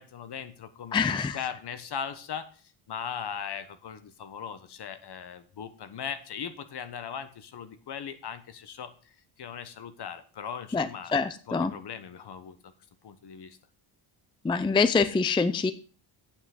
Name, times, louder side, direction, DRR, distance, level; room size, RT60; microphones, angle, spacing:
voice 1, 0.0-11.1 11.5-12.7 13.0-13.6, left 7 dB, 55° left, 11 dB, 1.3 m, -39 dB
voice 2, 0.9-1.4 10.7-11.7 14.4-15.7, left 4 dB, 10° left, 12 dB, 0.4 m, -25 dB
8.8 x 5.8 x 6.6 m, 0.40 s
cardioid pair, 135°, 48 cm